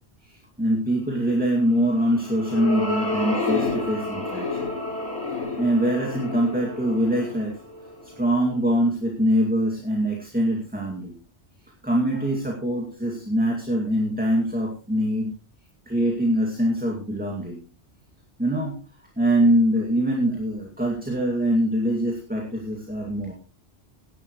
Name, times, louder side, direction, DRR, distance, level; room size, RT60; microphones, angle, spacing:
voice 1, 0.2-4.7 5.6-7.6 8.0-11.1 11.8-15.3 15.9-17.6 18.4-18.8 19.2-23.3, equal, 10° right, -1 dB, 2.3 m, -23 dB
sound 1, 1.8-8.4, left 3 dB, 70° left, 4.3 m, -30 dB
17.5 x 11.0 x 3.1 m, 0.35 s
omnidirectional pair, 1.1 m